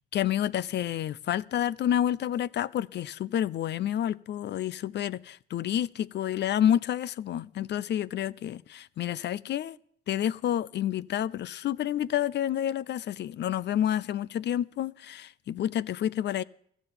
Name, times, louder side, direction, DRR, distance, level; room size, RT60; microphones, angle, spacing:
voice 1, 0.1-9.8 10.1-16.4, left 11 dB, 60° left, 0.5 m, -29 dB
16.0 x 12.5 x 5.6 m
cardioid pair, 90°, 20 cm